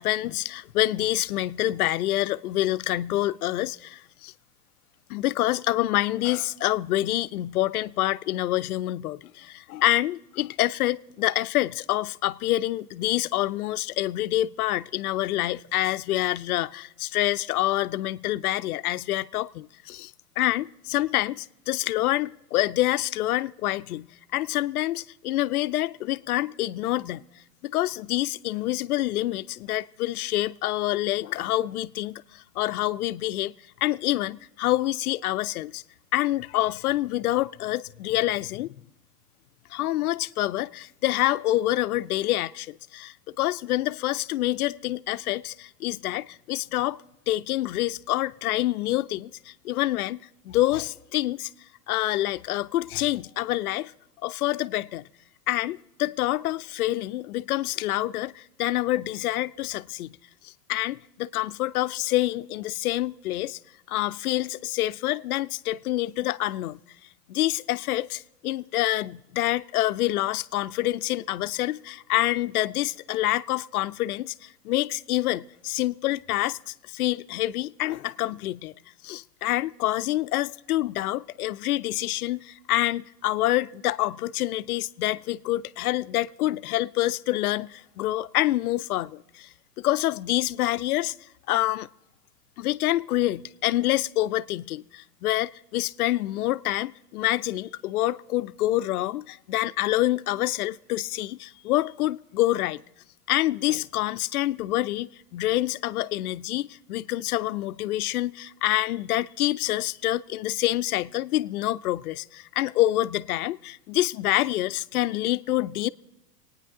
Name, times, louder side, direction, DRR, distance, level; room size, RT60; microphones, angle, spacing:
voice 1, 0.0-4.3 5.1-27.3 27.6-33.5 33.8-35.8 36.1-38.8 39.7-50.2 50.4-51.5 51.9-53.9 54.2-55.1 55.5-60.2 60.4-63.6 63.9-66.8 67.3-78.7 79.0-89.5 89.8-91.1 91.5-91.9 92.6-102.8 103.3-115.9, left 15 dB, 65° left, 0.6 m, -27 dB
25.0 x 9.5 x 3.7 m
hypercardioid pair, 120°, 48 cm